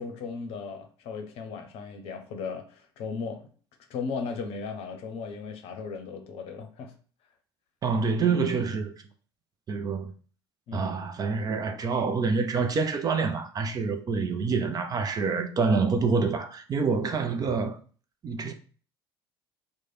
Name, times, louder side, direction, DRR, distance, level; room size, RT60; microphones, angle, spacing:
voice 1, 0.0-3.5 3.9-6.9 10.7-10.9, left 5 dB, 50° left, 0.7 m, -36 dB
voice 2, 7.8-8.9 9.7-10.1 10.7-17.8 18.2-18.5, right 4 dB, 30° right, 0.5 m, -27 dB
3.1 x 2.2 x 4.1 m
figure-of-eight pair, 65°, 13 cm